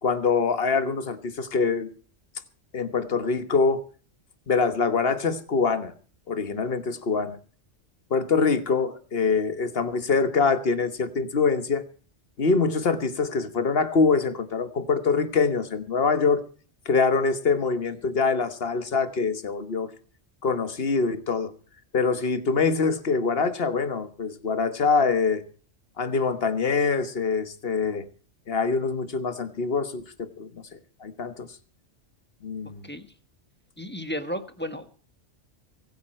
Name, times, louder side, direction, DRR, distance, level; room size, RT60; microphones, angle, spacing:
voice 1, 0.0-1.9 2.7-3.8 4.5-5.9 6.3-7.4 8.1-11.8 12.4-16.4 16.8-19.9 20.4-21.5 21.9-25.4 26.0-28.0 28.5-31.5 32.4-32.9, left 4 dB, 55° left, 11 dB, 1.5 m, -24 dB
voice 2, 33.8-35.1, equal, 10° left, 9 dB, 1.2 m, -34 dB
24.0 x 9.4 x 4.4 m, 0.41 s
omnidirectional pair, 1.2 m